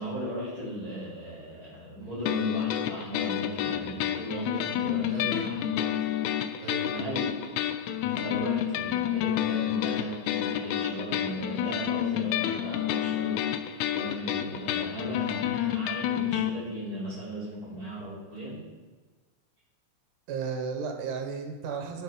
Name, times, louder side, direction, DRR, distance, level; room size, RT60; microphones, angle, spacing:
voice 1, 0.0-6.1 6.8-7.4 8.1-18.6, right 1 dB, 30° left, -7 dB, 3.1 m, -37 dB
sound 1, 2.3-16.5, left 11 dB, 80° left, 1.8 m, -29 dB
voice 2, 5.1-5.6 6.6-6.9 20.3-22.0, right 5 dB, 75° right, 4 dB, 2.6 m, -34 dB
9.9 x 7.6 x 5.5 m, 1.3 s
omnidirectional pair, 3.9 m